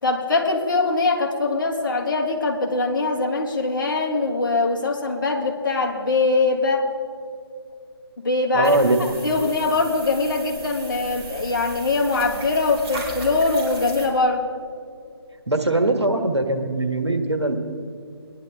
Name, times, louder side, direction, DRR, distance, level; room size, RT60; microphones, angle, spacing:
voice 1, 0.0-6.9 8.2-14.5, left 3 dB, 50° left, 1 dB, 1.8 m, -22 dB
voice 2, 8.5-9.2 15.5-17.6, right 2 dB, 85° right, 5 dB, 1.6 m, -21 dB
sound 1, 8.6-14.1, right 2 dB, 15° right, 2.5 m, -37 dB
20.5 x 11.0 x 3.5 m, 2.4 s
figure-of-eight pair, 145°, 14 cm